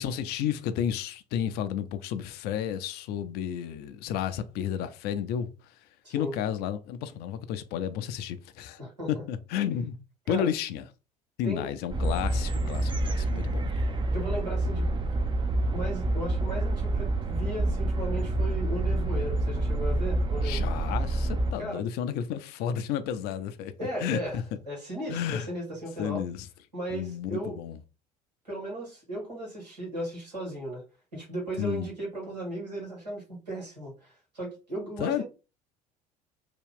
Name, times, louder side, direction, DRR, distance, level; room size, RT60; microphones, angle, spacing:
voice 1, 0.0-5.5 6.1-8.8 9.1-10.0 10.3-10.8 11.4-13.8 20.4-23.7 24.0-24.4 25.1-25.5 26.0-26.5 26.9-27.8 31.6-31.9 35.0-35.2, left 9 dB, 50° left, 0.5 m, -32 dB
voice 2, 8.8-9.1 10.3-10.5 11.4-11.7 14.1-14.8 15.1-15.2 15.7-20.6 21.6-21.8 23.8-24.4 24.7-26.2 26.7-27.6 28.4-30.8 31.1-35.2, right 1 dB, 85° right, 1.6 m, -36 dB
sound 1, 11.9-21.5, right 2 dB, 25° right, 0.5 m, -27 dB
2.8 x 2.3 x 3.6 m
figure-of-eight pair, 60°, 21 cm